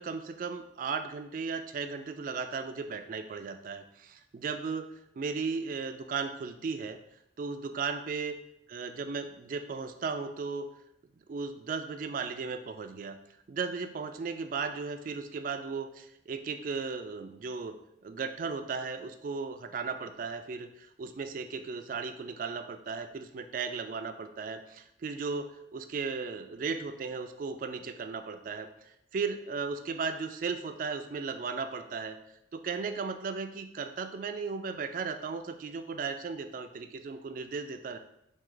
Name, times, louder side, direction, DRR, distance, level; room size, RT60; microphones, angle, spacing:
voice 1, 0.0-4.9 5.2-7.0 7.4-8.4 8.7-10.7 11.3-13.2 13.5-17.7 18.0-28.7 29.1-32.2 32.5-38.0, right 5 dB, 45° right, 8 dB, 0.3 m, -36 dB
4.5 x 2.7 x 3.8 m, 0.78 s
head